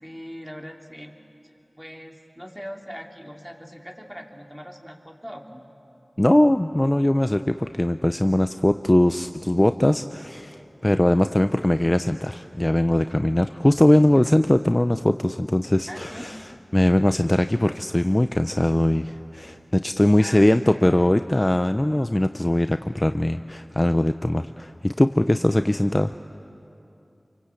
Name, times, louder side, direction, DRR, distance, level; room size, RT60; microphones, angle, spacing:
voice 1, 0.0-1.2 1.8-5.7 15.9-16.3 20.2-20.5 20.7-21.0, equal, 10° right, 2 dB, 2.9 m, -40 dB
voice 2, 6.2-16.4 16.7-26.1, left 1 dB, 25° left, 9 dB, 0.6 m, -21 dB
27.0 x 24.0 x 8.4 m, 2.8 s
wide cardioid pair, 40°, 0 cm